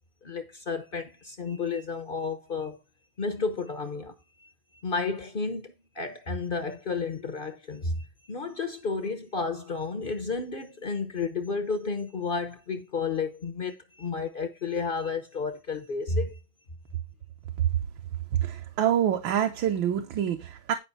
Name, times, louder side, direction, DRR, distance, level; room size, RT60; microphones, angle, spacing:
voice 1, 0.2-2.8 3.2-4.1 4.4-4.5 4.8-16.4, left 4 dB, 45° left, 0.7 m, -32 dB
voice 2, 18.3-20.7, right 10 dB, 75° right, 1.6 m, -26 dB
10.5 x 5.3 x 4.1 m
omnidirectional pair, 2.2 m